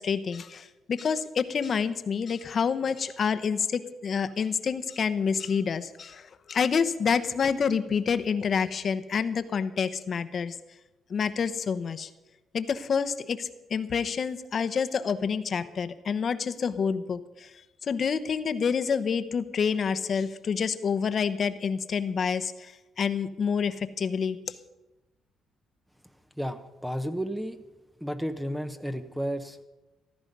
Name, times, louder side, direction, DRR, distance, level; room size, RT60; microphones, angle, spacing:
voice 1, 0.0-10.6 11.1-12.1 12.5-24.6, left 6 dB, 50° left, 12 dB, 1.0 m, -28 dB
voice 2, 26.4-27.6 28.0-29.6, equal, 5° right, 8 dB, 0.9 m, -32 dB
15.0 x 13.0 x 5.4 m, 1.1 s
cardioid pair, 90°, 0 cm